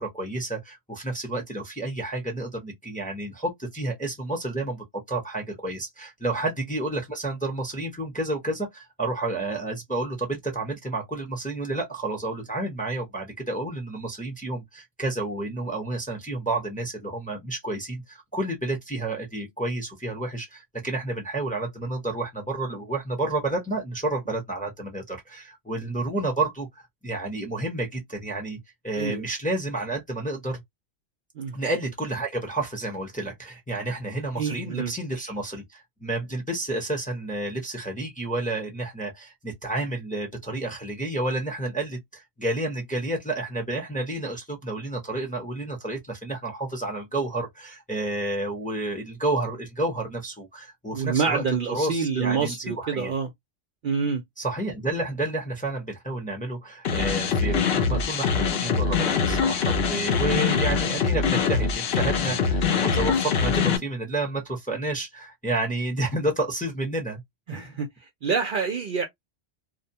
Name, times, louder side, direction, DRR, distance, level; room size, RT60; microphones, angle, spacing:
voice 1, 0.0-28.6 28.8-30.6 31.5-53.1 54.4-67.2 67.5-67.8, right 2 dB, 10° left, 0.6 m, -30 dB
voice 2, 28.9-29.2 31.4-31.6 34.4-34.9 50.9-53.3 53.8-54.2 62.3-62.4 62.9-63.0 67.5-69.1, right 5 dB, 60° right, 0.6 m, -27 dB
sound 1, 56.8-63.8, left 6 dB, 65° left, 0.8 m, -23 dB
2.6 x 2.1 x 2.7 m
omnidirectional pair, 1.2 m